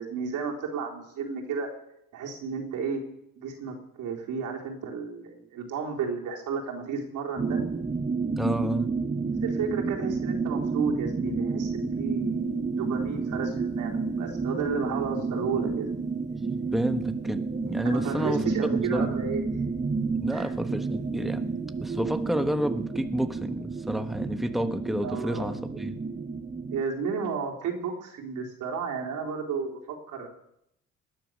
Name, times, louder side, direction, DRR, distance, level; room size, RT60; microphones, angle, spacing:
voice 1, 0.0-1.7 2.1-3.0 3.4-7.6 9.4-16.1 17.8-19.6 20.3-20.5 25.0-25.5 26.7-30.3, right 5 dB, 85° right, 0 dB, 4.0 m, -32 dB
sound 1, 7.4-26.8, right 4 dB, 25° right, 0.9 m, -30 dB
voice 2, 8.3-8.9 16.3-19.2 20.1-21.5 21.8-26.0, equal, ahead, 8 dB, 1.2 m, -30 dB
20.0 x 10.5 x 6.5 m, 0.78 s
cardioid pair, 90°, 30 cm